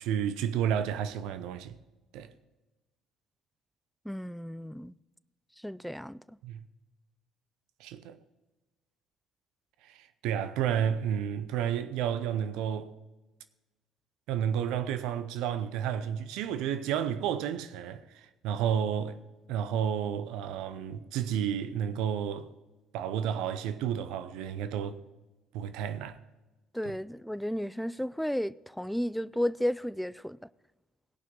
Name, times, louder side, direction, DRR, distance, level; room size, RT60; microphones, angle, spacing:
voice 1, 0.0-1.8 2.1-2.3 6.4-6.6 7.8-8.2 9.9-12.9 14.3-19.2 19.5-22.5 22.9-25.0 25.5-26.2, right 9 dB, 70° right, 0.7 m, -31 dB
voice 2, 4.1-4.9 5.6-6.2 26.7-30.4, equal, ahead, 0.4 m, -33 dB
17.0 x 5.8 x 5.4 m
hypercardioid pair, 55°, 0 cm